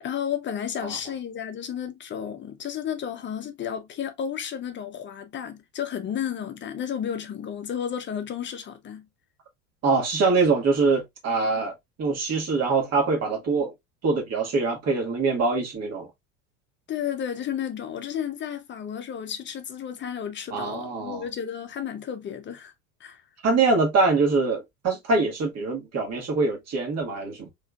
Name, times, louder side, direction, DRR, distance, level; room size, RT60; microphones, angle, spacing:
voice 1, 0.0-9.1 16.9-22.7 23.0-23.2, left 8 dB, 25° left, 0.8 m, -32 dB
voice 2, 9.8-11.7 12.0-13.7 14.0-16.1 20.5-21.2 23.4-27.5, right 4 dB, 35° right, 1.8 m, -24 dB
3.6 x 3.3 x 2.4 m
hypercardioid pair, 80°, 43 cm